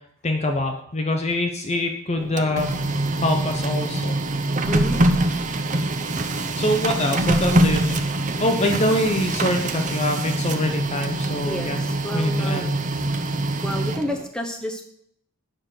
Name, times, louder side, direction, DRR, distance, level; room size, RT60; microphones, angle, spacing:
voice 1, 0.2-2.7 3.2-4.2 6.6-8.0 8.4-11.8 12.1-12.7, left 1 dB, 30° left, 4 dB, 0.7 m, -24 dB
Printer, 2.2-14.3, right 2 dB, 35° right, 0.6 m, -24 dB
voice 2, 4.6-5.0 11.4-12.8 13.6-14.8, equal, 5° left, 2 dB, 1.0 m, -30 dB
9.0 x 5.9 x 6.5 m, 0.69 s
head